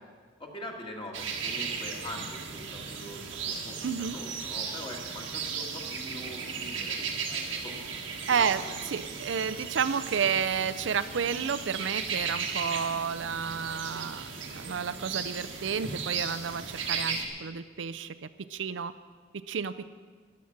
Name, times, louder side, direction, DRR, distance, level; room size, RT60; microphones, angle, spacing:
voice 1, 0.4-7.8 8.3-8.8, left 1 dB, 25° left, 1 dB, 1.8 m, -43 dB
sound 1, 1.1-17.2, right 5 dB, 85° right, 1.5 m, -36 dB
voice 2, 3.8-4.2 8.3-8.6 8.9-18.1 18.5-18.9 19.3-19.9, right 7 dB, 70° right, 13 dB, 0.5 m, -31 dB
13.5 x 11.0 x 5.9 m, 1.5 s
head